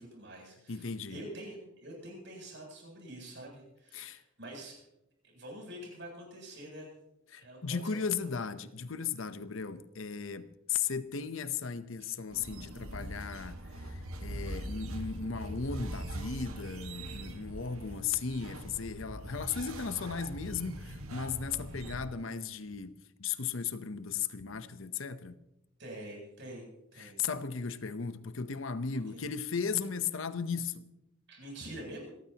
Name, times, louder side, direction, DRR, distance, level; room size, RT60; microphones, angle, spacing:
voice 1, 0.0-4.8 5.2-6.9 7.4-8.3 25.8-27.2 29.1-29.2 31.3-32.1, right 1 dB, 55° right, 7.9 m, -46 dB
voice 2, 0.7-1.2 3.9-4.2 7.3-25.3 27.0-30.9, left 6 dB, 65° left, 0.8 m, -36 dB
sound 1, 12.3-22.0, right 1 dB, 90° right, 1.7 m, -42 dB
28.5 x 13.5 x 2.9 m
head